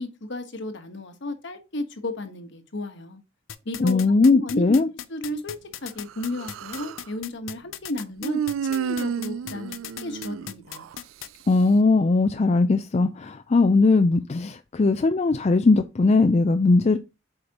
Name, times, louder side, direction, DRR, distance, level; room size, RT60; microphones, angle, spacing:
voice 1, 0.0-3.2 3.6-4.8 5.1-5.5 5.8-9.8 10.0-10.9, left 1 dB, 65° left, 1.2 m, -33 dB
sound 1, 3.5-11.3, left 11 dB, 85° left, 0.6 m, -37 dB
voice 2, 3.8-4.9 11.5-17.0, left 3 dB, 35° left, 0.4 m, -19 dB
Human voice, 6.1-7.1 8.2-11.0, right 8 dB, 85° right, 0.3 m, -31 dB
8.0 x 5.0 x 2.9 m
head